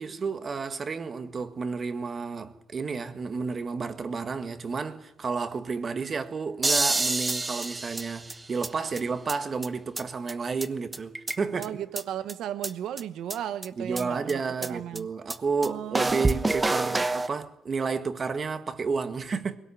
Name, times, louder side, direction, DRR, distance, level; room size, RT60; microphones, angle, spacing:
voice 1, 0.0-11.7 13.8-19.6, right 5 dB, 40° right, 1.7 m, -31 dB
sound 1, 6.6-8.7 9.0-9.1 9.3-9.4 9.6-9.7 10.0-10.1 10.3-10.4 10.6-10.7 10.9-11.7 12.0-12.1 12.3-12.4 12.6-12.7 13.0-13.1 13.3-13.4 13.6-13.7 14.0-14.1 14.3-14.4 14.6-14.7 15.0-15.1 15.3-15.4 15.6-15.7 15.9-17.3, right 2 dB, 20° right, 1.1 m, -27 dB
voice 2, 11.5-15.1 15.6-17.0, right 10 dB, 80° right, 1.1 m, -36 dB
21.0 x 18.0 x 9.9 m
cardioid pair, 90°, 0 cm